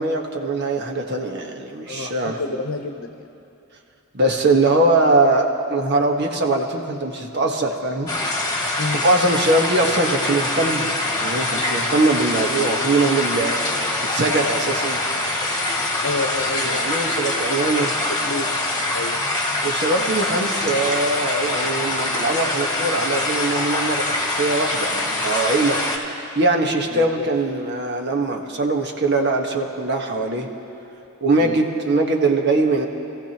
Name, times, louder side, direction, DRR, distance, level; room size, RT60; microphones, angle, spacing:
voice 1, 0.0-2.4 4.1-8.1 9.0-10.9 11.2-13.5 14.1-15.0 16.6-17.9 19.6-25.8 26.3-30.5 31.2-32.9, right 2 dB, 55° right, 2 dB, 1.4 m, -21 dB
voice 2, 1.9-3.2 8.8-9.0 16.0-16.8 17.5-17.9 18.2-19.2 26.9-27.3 31.4-31.6, left 3 dB, 85° left, 7 dB, 0.9 m, -29 dB
sound 1, 8.1-26.0, left 2 dB, 20° left, 1.6 m, -24 dB
28.0 x 15.5 x 3.0 m, 2.7 s
head